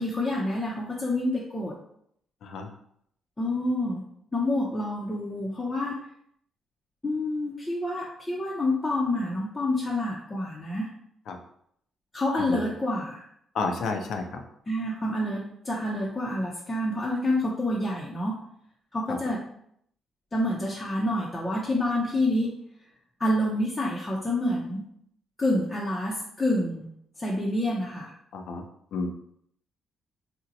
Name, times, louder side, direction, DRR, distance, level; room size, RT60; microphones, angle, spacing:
voice 1, 0.0-1.8 3.4-4.0 4.3-6.0 7.0-10.9 12.1-13.2 14.7-18.4 18.9-19.4 20.3-22.5 23.2-24.9 25.4-26.9 27.2-28.1, left 1 dB, 20° left, -5 dB, 0.6 m, -28 dB
voice 2, 13.5-14.4 28.3-28.6 28.9-29.1, left 4 dB, 70° left, 4 dB, 0.5 m, -30 dB
2.8 x 2.1 x 3.8 m, 0.69 s
cardioid pair, 90°, 0 cm